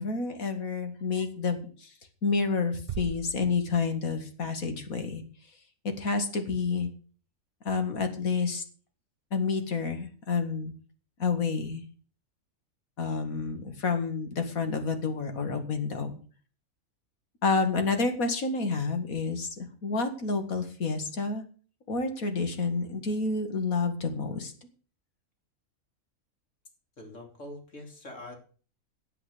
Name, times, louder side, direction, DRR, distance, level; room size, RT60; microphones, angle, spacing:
voice 1, 0.0-1.9 2.2-5.2 6.0-6.9 7.6-8.6 9.3-10.7 11.2-11.8 13.0-16.1 17.4-21.4 21.9-24.5, left 4 dB, 80° left, 7 dB, 2.4 m, -29 dB
sound 1, 2.9-4.5, right 9 dB, 50° right, 0.8 m, -40 dB
voice 2, 27.0-28.3, left 1 dB, 60° left, 2 dB, 3.9 m, -44 dB
10.0 x 8.1 x 7.9 m, 0.40 s
omnidirectional pair, 1.5 m